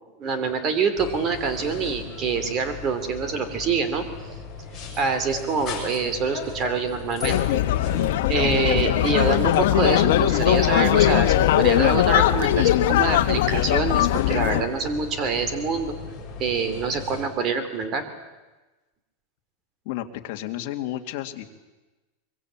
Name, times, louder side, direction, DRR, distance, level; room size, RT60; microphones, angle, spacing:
voice 1, 0.2-4.0 5.0-7.4 8.3-15.9 16.4-18.0, right 5 dB, 30° right, 10 dB, 2.9 m, -25 dB
sound 1, 1.0-17.3, left 4 dB, 15° left, 7.5 m, -38 dB
sound 2, 7.2-14.6, left 13 dB, 65° left, 1.3 m, -20 dB
voice 2, 19.9-21.4, left 13 dB, 50° left, 4 dB, 2.1 m, -32 dB
23.5 x 23.0 x 8.8 m, 1.2 s
supercardioid pair, 165°, 0 cm